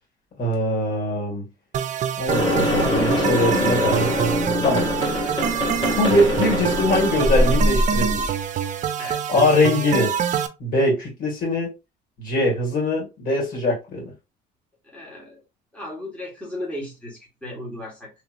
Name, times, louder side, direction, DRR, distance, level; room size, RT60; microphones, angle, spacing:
voice 1, 0.4-1.5 2.2-4.1 4.6-4.9 6.0-8.3 9.3-10.1 10.6-11.7 12.2-14.1, left 1 dB, 55° left, 2.0 m, -22 dB
sound 1, 1.7-10.5, right 8 dB, 45° right, 0.4 m, -26 dB
sound 2, 2.3-8.3, left 1 dB, 25° left, 1.3 m, -23 dB
voice 2, 14.8-15.4 15.7-18.1, left 1 dB, 5° left, 1.4 m, -35 dB
3.0 x 2.9 x 2.5 m
cardioid pair, 110°, 17 cm